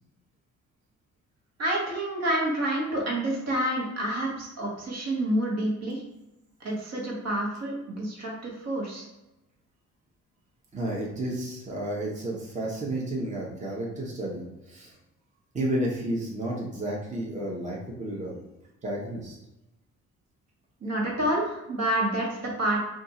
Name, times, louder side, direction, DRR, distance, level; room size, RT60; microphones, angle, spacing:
voice 1, 1.6-6.0 6.6-9.1 20.8-22.8, right 1 dB, 60° right, -2 dB, 1.2 m, -28 dB
voice 2, 10.7-15.0 15.5-18.4 18.8-19.4, right 1 dB, 25° right, -3 dB, 0.9 m, -31 dB
2.5 x 2.4 x 4.1 m, 0.94 s
cardioid pair, 90°, 30 cm